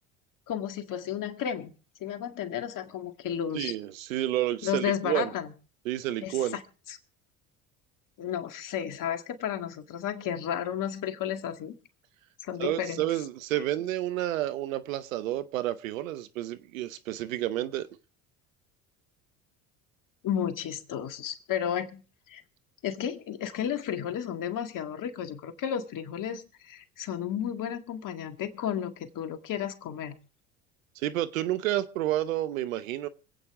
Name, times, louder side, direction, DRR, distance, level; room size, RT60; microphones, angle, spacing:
voice 1, 0.5-1.7 2.0-3.7 4.6-5.5 6.2-6.6 6.9-7.0 8.2-11.7 12.4-13.1 20.2-22.0 22.3-22.4 22.8-30.2, left 9 dB, 55° left, 2.1 m, -33 dB
voice 2, 3.5-5.3 5.8-6.6 12.6-17.9 31.0-33.1, right 14 dB, 85° right, 1.0 m, -30 dB
26.0 x 8.8 x 3.7 m
hypercardioid pair, 75°, 39 cm